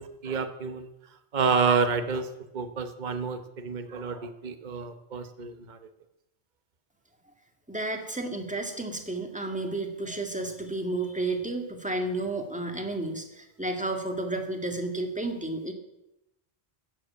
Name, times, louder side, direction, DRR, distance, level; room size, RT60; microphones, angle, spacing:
voice 1, 0.0-5.8, right 5 dB, 45° right, 9 dB, 1.1 m, -29 dB
voice 2, 7.7-15.7, right 2 dB, 5° right, 3 dB, 1.9 m, -32 dB
13.5 x 8.2 x 8.5 m, 0.90 s
omnidirectional pair, 1.1 m